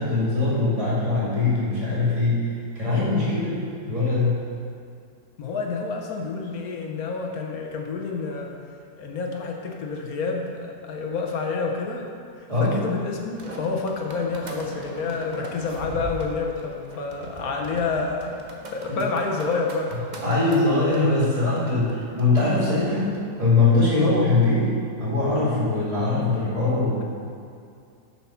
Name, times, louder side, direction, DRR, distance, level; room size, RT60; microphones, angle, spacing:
voice 1, 0.0-2.4 2.8-4.4 12.5-12.7 18.9-19.0 20.2-27.0, left 3 dB, 20° right, -9 dB, 2.4 m, -22 dB
voice 2, 5.4-8.5 9.0-12.1 12.4-18.3 18.7-19.9, left 4 dB, 60° left, 1 dB, 1.2 m, -28 dB
sound 1, 13.1-23.2, right 1 dB, 40° right, 0.6 m, -40 dB
7.3 x 5.8 x 5.7 m, 2.3 s
omnidirectional pair, 1.9 m